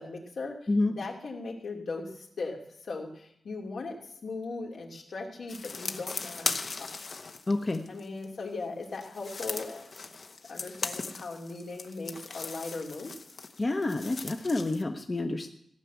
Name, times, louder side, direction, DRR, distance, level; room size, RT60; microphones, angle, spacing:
voice 1, 0.0-0.6 0.9-7.1 7.9-9.9 10.5-13.1, left 3 dB, 80° left, 0 dB, 2.6 m, -38 dB
sound 1, 5.5-8.3 8.8-14.8, left 4 dB, 60° left, 1.0 m, -38 dB
voice 2, 7.5-7.8 13.6-15.5, left 2 dB, 35° left, 5 dB, 0.9 m, -28 dB
16.0 x 5.8 x 9.2 m, 0.71 s
cardioid pair, 75°, 0 cm